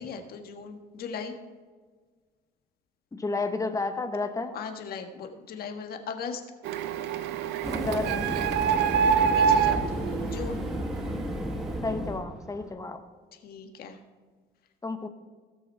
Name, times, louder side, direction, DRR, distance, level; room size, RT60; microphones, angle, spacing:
voice 1, 0.0-1.3 4.5-6.4 9.2-10.7 13.4-14.0, left 5 dB, 65° left, 5 dB, 1.6 m, -38 dB
voice 2, 3.1-4.6 7.8-8.1 11.8-13.0 14.8-15.1, left 3 dB, 20° left, 7 dB, 1.2 m, -31 dB
Printer, 6.6-11.2, right 7 dB, 85° right, 0.7 m, -26 dB
sound 1, 7.6-12.7, equal, ahead, 1.3 m, -33 dB
17.5 x 6.3 x 4.4 m, 1.5 s
cardioid pair, 110°, 17 cm